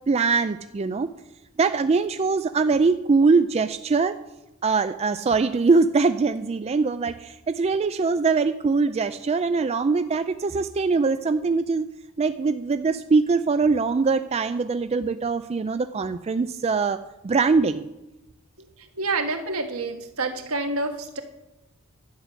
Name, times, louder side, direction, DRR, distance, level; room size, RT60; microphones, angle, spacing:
voice 1, 0.1-1.1 1.6-4.2 4.6-11.9 12.2-17.0 17.2-17.9, right 4 dB, 30° right, 10 dB, 0.3 m, -22 dB
voice 2, 18.8-21.2, right 3 dB, 75° right, 5 dB, 1.6 m, -28 dB
11.0 x 6.2 x 9.1 m, 0.98 s
head